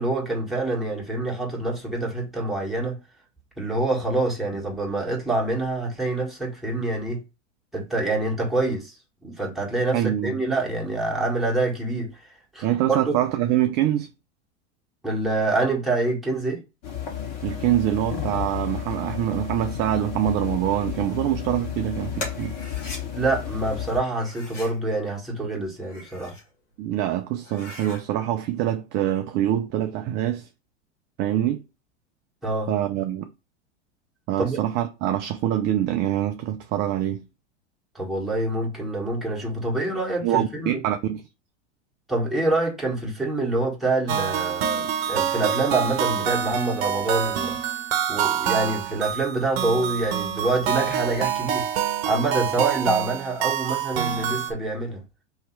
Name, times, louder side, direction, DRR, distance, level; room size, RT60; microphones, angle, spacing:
voice 1, 0.0-3.0 3.6-7.2 7.7-8.9 9.2-12.1 12.5-13.1 15.0-16.6 23.1-26.3 32.4-32.7 34.4-34.6 37.9-40.8 42.1-47.6 48.1-51.7 52.0-55.0, right 2 dB, ahead, 1.6 m, -26 dB
voice 2, 9.9-10.3 12.6-14.1 17.4-22.5 26.8-30.5 31.2-31.6 32.7-33.3 34.3-37.2 40.2-41.2, right 12 dB, 30° right, 0.4 m, -25 dB
sound 1, 16.8-24.0, left 9 dB, 45° left, 1.9 m, -32 dB
sound 2, 22.2-23.0 24.1-24.8 25.7-26.5 26.9-27.0 27.4-28.0, left 2 dB, 90° left, 1.7 m, -39 dB
sound 3, 44.1-54.5, right 9 dB, 55° right, 0.8 m, -26 dB
3.2 x 2.9 x 4.5 m
hypercardioid pair, 100°, 36 cm